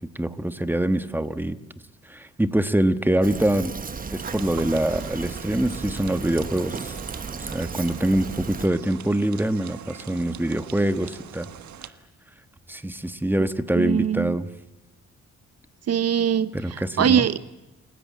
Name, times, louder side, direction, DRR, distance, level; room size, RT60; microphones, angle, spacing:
voice 1, 0.1-1.6 2.1-3.7 4.1-6.9 7.3-11.5 12.7-14.5 16.5-17.3, right 1 dB, 5° right, 11 dB, 1.3 m, -24 dB
Fill (with liquid), 3.2-8.7, right 5 dB, 30° right, 1.0 m, -35 dB
sound 1, 4.2-11.9, right 9 dB, 75° right, 1.5 m, -43 dB
voice 2, 13.8-14.4 15.9-16.5 17.0-17.4, right 9 dB, 55° right, 15 dB, 0.7 m, -21 dB
29.0 x 17.5 x 8.5 m, 1.1 s
cardioid pair, 95°, 29 cm